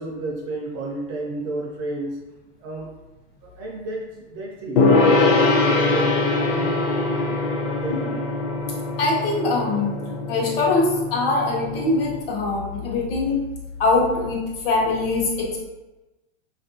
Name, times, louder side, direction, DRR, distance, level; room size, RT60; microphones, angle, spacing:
voice 1, 0.0-2.2 2.6-2.9 3.4-8.2, right 2 dB, 30° right, -2 dB, 0.4 m, -32 dB
Gong, 4.8-12.2, left 3 dB, 35° left, 0.4 m, -22 dB
voice 2, 9.0-10.0 10.3-13.4 13.8-15.6, left 3 dB, 55° left, -1 dB, 0.8 m, -22 dB
3.0 x 2.5 x 2.7 m, 1.1 s
supercardioid pair, 160°, 35 cm